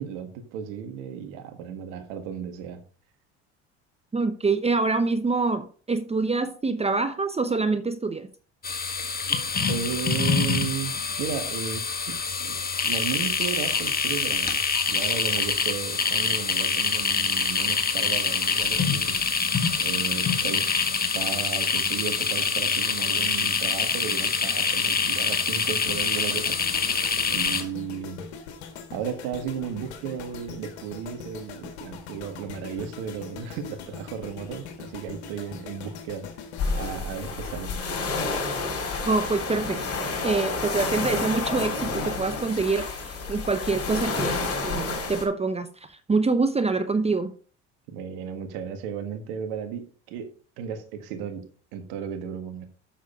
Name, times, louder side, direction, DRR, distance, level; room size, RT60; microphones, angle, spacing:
voice 1, 0.0-2.8 9.6-12.6 12.8-14.6 14.9-19.2 19.8-20.7 21.1-26.6 27.3-28.2 28.9-36.3 36.7-37.7 47.9-50.3 50.6-51.4 51.7-52.7, right 8 dB, 75° right, 1.8 m, -34 dB
voice 2, 4.1-8.3 39.1-39.8 40.2-47.3, right 3 dB, 20° right, 0.8 m, -25 dB
sound 1, 8.6-27.6, left 5 dB, 30° left, 1.5 m, -25 dB
sound 2, 25.9-38.1 38.3-38.6, left 6 dB, 85° left, 1.6 m, -42 dB
sound 3, 36.6-45.3, left 3 dB, 45° left, 4.1 m, -29 dB
7.5 x 6.6 x 5.0 m
hypercardioid pair, 65°, 33 cm